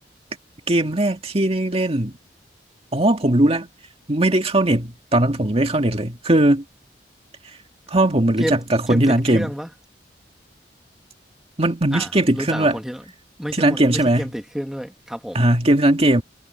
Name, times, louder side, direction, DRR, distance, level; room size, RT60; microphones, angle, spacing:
voice 1, 0.7-2.1 2.9-3.7 4.1-6.6 7.4-7.6 7.9-9.5 11.6-12.8 13.5-14.3 15.3-16.2, right 1 dB, 35° right, 2.0 m, -19 dB
voice 2, 8.4-9.7 11.9-13.0 13.4-15.4, equal, 5° right, 2.1 m, -30 dB
head